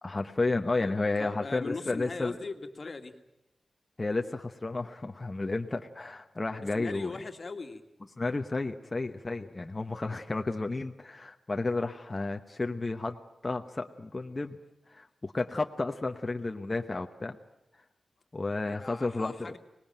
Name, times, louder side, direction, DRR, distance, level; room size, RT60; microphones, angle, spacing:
voice 1, 0.0-2.4 4.0-7.1 8.2-13.2 13.4-14.6 14.9-17.4 18.3-19.5, left 3 dB, 25° left, 5 dB, 1.0 m, -32 dB
voice 2, 0.8-3.2 6.6-7.8 18.7-19.6, left 3 dB, 40° left, 7 dB, 2.0 m, -40 dB
24.5 x 19.5 x 9.0 m, 0.88 s
wide cardioid pair, 110°, 0 cm